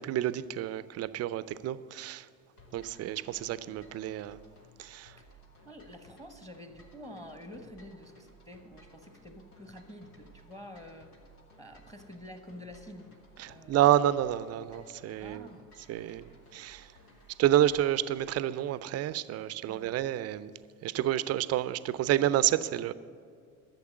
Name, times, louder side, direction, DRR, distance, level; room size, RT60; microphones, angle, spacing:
voice 1, 0.0-2.3 2.7-4.4 4.8-5.1 13.4-15.5 15.9-16.9 17.4-20.5 20.8-22.9, right 12 dB, 35° right, 17 dB, 0.5 m, -29 dB
sound 1, 2.6-18.5, right 1 dB, 80° left, 1.7 m, -58 dB
voice 2, 5.6-11.1 11.6-13.1 13.4-13.9 15.2-15.7 19.7-20.0, equal, 10° left, 7 dB, 1.1 m, -48 dB
13.0 x 7.1 x 7.9 m, 2.3 s
figure-of-eight pair, 55°, 45 cm